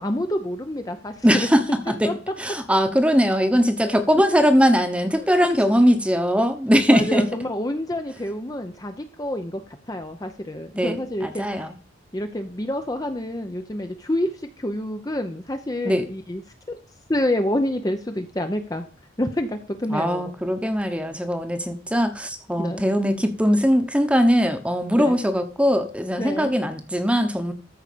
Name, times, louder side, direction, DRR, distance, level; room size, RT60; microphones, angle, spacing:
voice 1, 0.0-1.5 2.0-2.1 3.8-4.0 5.2-5.5 6.7-11.4 12.1-16.4 16.7-16.8 17.1-18.9 19.2-20.3 22.6-22.8 25.0-25.2 26.2-26.5, left 1 dB, 20° left, 6 dB, 0.7 m, -28 dB
voice 2, 1.2-2.1 2.4-7.2 10.8-11.0 11.2-11.7 15.8-16.1 19.9-27.5, equal, 5° right, 9 dB, 1.1 m, -20 dB
13.5 x 4.9 x 6.7 m, 0.42 s
head